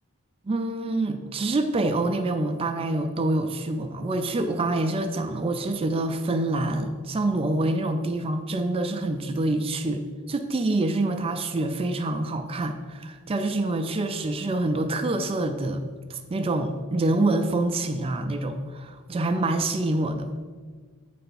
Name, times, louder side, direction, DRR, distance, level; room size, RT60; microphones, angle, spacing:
voice 1, 0.5-15.8 16.1-20.3, right 2 dB, 25° right, 7 dB, 0.3 m, -26 dB
7.6 x 3.4 x 5.7 m, 1.5 s
head